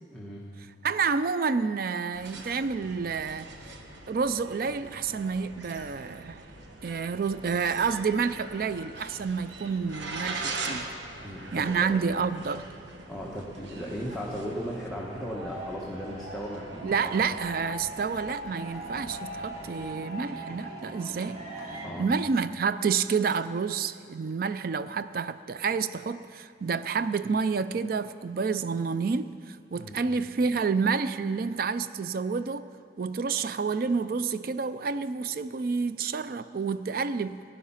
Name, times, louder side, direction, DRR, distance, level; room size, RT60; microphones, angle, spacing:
voice 1, 0.1-0.5 11.2-11.9 13.1-17.1 21.8-22.1 29.7-30.0, equal, ahead, 1.2 m, -36 dB
voice 2, 0.8-3.7 4.1-6.4 6.8-10.9 11.5-12.7 16.8-21.4 21.7-32.7 33.0-37.4, right 5 dB, 55° right, 0.4 m, -29 dB
sound 1, 2.1-19.9, right 3 dB, 85° right, 1.2 m, -42 dB
sound 2, 13.8-21.9, right 1 dB, 35° right, 2.0 m, -41 dB
16.0 x 10.0 x 5.7 m
head